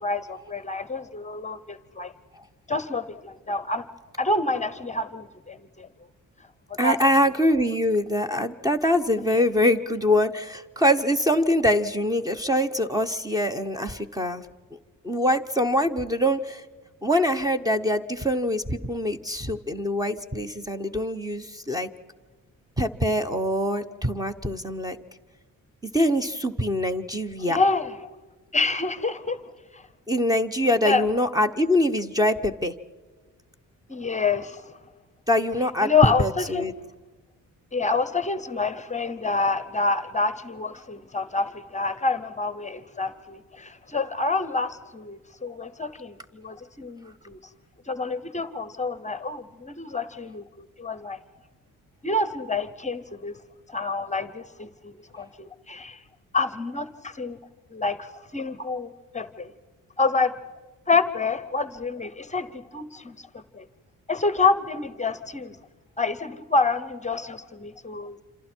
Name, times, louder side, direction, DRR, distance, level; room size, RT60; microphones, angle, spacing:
voice 1, 0.0-2.1 2.7-3.8 4.2-5.9 6.8-7.0 9.2-9.4 27.4-27.9 28.5-29.4 29.7-29.8 30.9-31.0 33.9-34.7 35.8-36.7 37.7-47.4 47.9-51.2 52.0-53.3 53.7-56.0 56.3-57.4 57.7-59.5 60.0-60.3 60.9-63.3 63.5-63.6 64.1-65.6 66.0-68.2, left 3 dB, 20° left, 13 dB, 0.8 m, -27 dB
voice 2, 6.8-14.5 15.0-16.6 17.0-21.9 22.8-25.0 25.8-27.6 30.1-32.7 35.3-36.7, left 1 dB, 10° right, 10 dB, 0.9 m, -24 dB
28.0 x 27.0 x 4.5 m, 1.3 s
wide cardioid pair, 140°, 33 cm